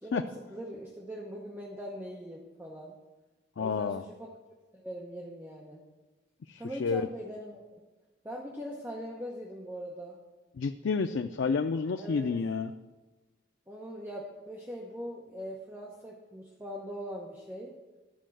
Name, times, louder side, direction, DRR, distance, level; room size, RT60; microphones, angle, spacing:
voice 1, 0.0-2.9 3.6-4.3 4.7-5.8 6.6-7.8 8.2-10.2 12.0-12.4 13.7-17.7, equal, 10° right, -2 dB, 1.0 m, -41 dB
voice 2, 3.6-4.0 6.5-7.1 10.6-12.7, left 5 dB, 85° left, 8 dB, 0.4 m, -30 dB
12.0 x 5.4 x 7.6 m, 1.2 s
head